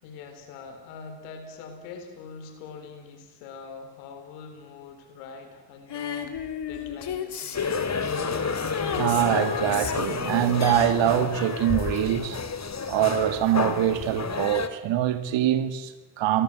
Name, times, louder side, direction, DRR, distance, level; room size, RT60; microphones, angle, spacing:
voice 1, 0.0-8.3, left 5 dB, 80° left, 4.3 m, -43 dB
Female singing, 5.9-12.9 14.0-14.1, left 7 dB, 60° left, 3.4 m, -35 dB
sound 1, 7.5-14.7, left 5 dB, 35° left, 2.7 m, -30 dB
voice 2, 9.0-12.4 12.9-16.4, right 11 dB, 70° right, 2.3 m, -24 dB
29.5 x 22.5 x 7.7 m
hypercardioid pair, 45°, 47 cm